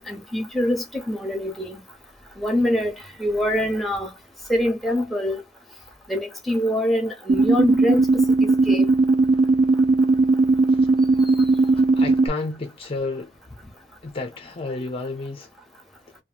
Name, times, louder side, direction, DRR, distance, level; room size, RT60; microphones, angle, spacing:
voice 1, 0.0-1.8 2.4-2.9 3.2-4.1 4.5-5.4 6.1-8.0 8.4-8.9, left 1 dB, ahead, 0.8 m, -24 dB
sound 1, 7.3-12.3, right 3 dB, 50° right, 0.4 m, -18 dB
voice 2, 11.8-13.4 14.0-15.5, left 3 dB, 30° left, 0.4 m, -31 dB
3.0 x 2.2 x 2.4 m
head